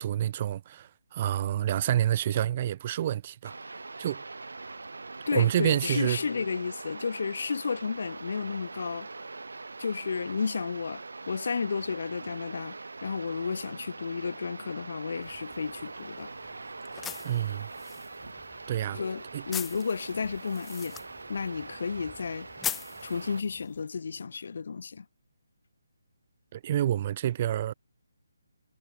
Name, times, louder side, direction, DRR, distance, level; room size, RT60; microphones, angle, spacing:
voice 1, 0.0-3.5 4.0-4.2 5.3-6.2 17.2-17.7 18.7-19.0 19.3-19.4 26.5-27.7, right 11 dB, 35° right, 1.4 m, -28 dB
sound 1, 3.4-23.4, right 3 dB, 80° right, 3.1 m, -43 dB
voice 2, 5.3-9.1 9.8-16.3 18.9-21.0 21.3-22.5 23.0-25.1, left 5 dB, 60° left, 6.8 m, -32 dB
sound 2, 15.2-23.8, left 9 dB, 10° left, 3.4 m, -42 dB
figure-of-eight pair, 155°, 0 cm